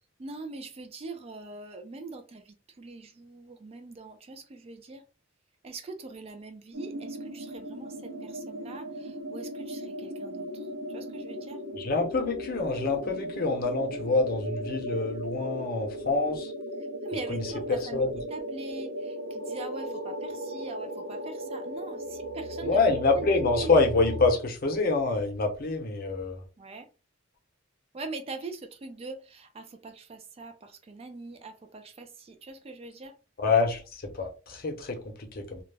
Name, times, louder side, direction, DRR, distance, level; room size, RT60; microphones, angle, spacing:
voice 1, 0.2-5.0 5.6-10.7 10.9-11.6 17.0-22.8 23.1-23.3 23.5-23.7 26.6-26.9 27.9-33.1, right 3 dB, 30° right, 0.3 m, -42 dB
sound 1, 6.7-24.3, equal, 70° right, 0.7 m, -37 dB
voice 2, 11.7-16.5 17.3-18.1 22.6-26.4 33.4-33.8 34.2-35.6, left 3 dB, 50° left, 0.7 m, -26 dB
2.3 x 2.0 x 3.2 m
head